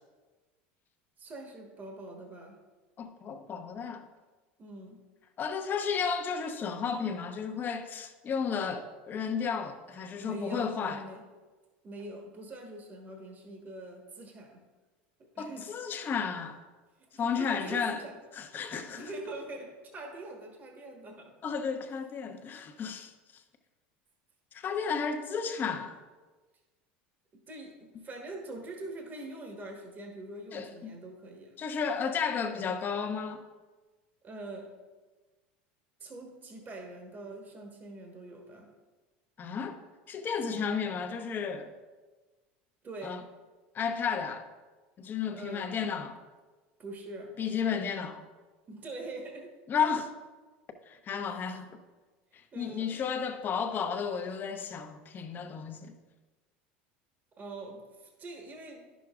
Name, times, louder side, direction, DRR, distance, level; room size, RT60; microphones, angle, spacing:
voice 1, 1.2-2.6 4.6-5.0 10.0-11.2 11.8-14.7 15.2-15.7 17.0-18.2 18.5-21.4 27.5-31.6 34.2-34.7 36.0-38.7 42.8-43.3 45.3-45.8 46.8-47.4 48.7-49.5 51.2-51.3 52.5-53.0 57.4-59.0, right 2 dB, 30° right, 1 dB, 1.2 m, -44 dB
voice 2, 3.0-4.0 5.4-11.0 15.4-16.6 17.2-18.0 18.4-19.1 21.4-23.1 24.5-26.0 30.5-31.0 31.6-33.4 39.4-39.8 40.1-41.7 43.0-43.2 43.7-44.4 45.0-46.2 47.4-48.2 49.7-50.1 50.9-51.7 52.6-56.0, left 6 dB, 35° left, 6 dB, 0.8 m, -33 dB
10.5 x 6.2 x 2.4 m, 1.3 s
supercardioid pair, 95°, 5 cm